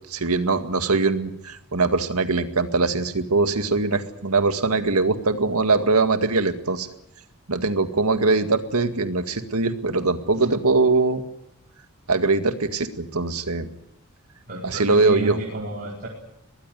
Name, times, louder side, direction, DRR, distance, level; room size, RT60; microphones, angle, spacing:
voice 1, 0.1-6.9 7.5-11.2 12.1-13.7 14.6-15.4, right 3 dB, 85° right, 8 dB, 2.0 m, -22 dB
voice 2, 14.5-16.1, right 2 dB, 45° right, -3 dB, 4.7 m, -31 dB
23.5 x 19.0 x 9.5 m, 0.79 s
head